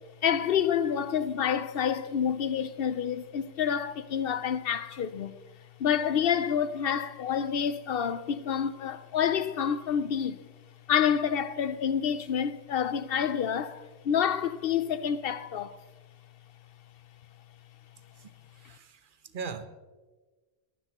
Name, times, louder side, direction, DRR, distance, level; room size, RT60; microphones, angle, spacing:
voice 1, 0.2-5.4 5.8-10.4 10.9-15.7, left 8 dB, 65° left, 0.8 m, -28 dB
voice 2, 18.6-19.0 19.3-19.6, right 5 dB, 55° right, 1.0 m, -38 dB
20.5 x 14.5 x 3.0 m
omnidirectional pair, 1.1 m